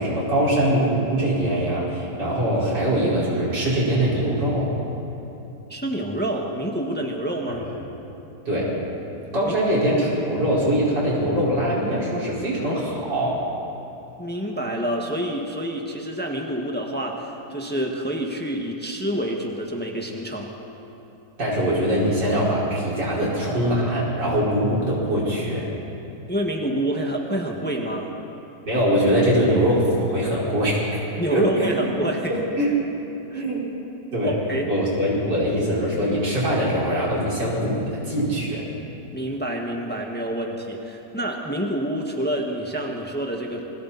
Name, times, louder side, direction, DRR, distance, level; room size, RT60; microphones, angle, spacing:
voice 1, 0.0-4.7 7.5-7.6 8.5-8.8 9.3-13.4 21.4-25.7 28.7-31.7 32.3-32.7 33.3-33.7 34.1-34.4 34.7-38.7, equal, 90° right, -6 dB, 5.7 m, -22 dB
voice 2, 5.7-7.6 9.4-9.5 14.2-20.5 26.3-28.1 31.2-32.4 33.3-33.4 34.2-34.7 39.1-43.6, right 1 dB, 5° left, 0 dB, 1.6 m, -27 dB
28.0 x 22.0 x 4.2 m, 2.9 s
omnidirectional pair, 1.8 m